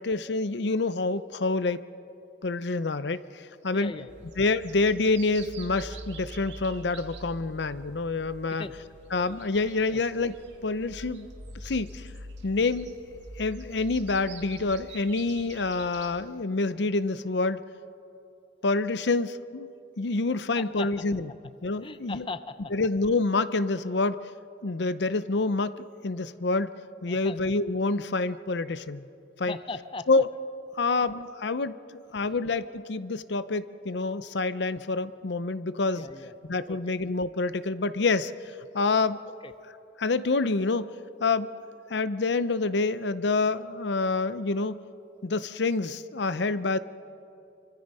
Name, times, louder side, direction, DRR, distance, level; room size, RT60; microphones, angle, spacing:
voice 1, 0.0-1.8 2.4-3.9 4.4-8.6 9.1-10.3 10.6-11.3 11.6-12.1 12.4-13.0 13.4-17.6 18.6-19.7 20.0-21.3 21.6-22.3 22.7-24.3 24.6-26.7 27.0-29.1 29.4-29.6 30.1-30.3 30.7-36.0 36.5-39.2 40.0-41.5 41.9-44.8 45.2-46.8, left 3 dB, 65° left, 14 dB, 0.7 m, -27 dB
voice 2, 3.7-4.3 8.6-8.7 9.9-10.0 20.5-20.9 21.8-22.7 27.1-27.4 29.4-30.1 30.8-31.0 32.1-32.4 36.0-36.3 36.7-37.0 39.4-39.5, left 3 dB, 30° left, 12 dB, 0.6 m, -39 dB
sound 1, 4.1-16.1, right 1 dB, 75° right, 2.4 m, -45 dB
27.0 x 24.5 x 5.5 m, 2.6 s
head